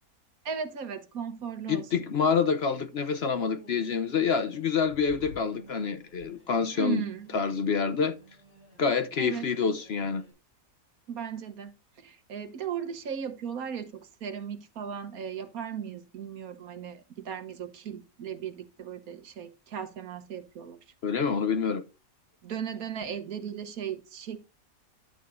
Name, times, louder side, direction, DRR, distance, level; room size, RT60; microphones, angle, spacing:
voice 1, 0.4-1.9 6.7-7.3 9.2-9.4 11.1-11.7 12.0-20.8 22.4-24.4, right 7 dB, 80° right, 1.5 m, -36 dB
voice 2, 1.7-7.0 7.3-8.1 8.8-10.2 21.0-21.8, left 6 dB, 55° left, 0.8 m, -27 dB
sound 1, 3.4-10.3, left 2 dB, 90° left, 5.0 m, -53 dB
11.0 x 8.6 x 2.6 m
omnidirectional pair, 1.5 m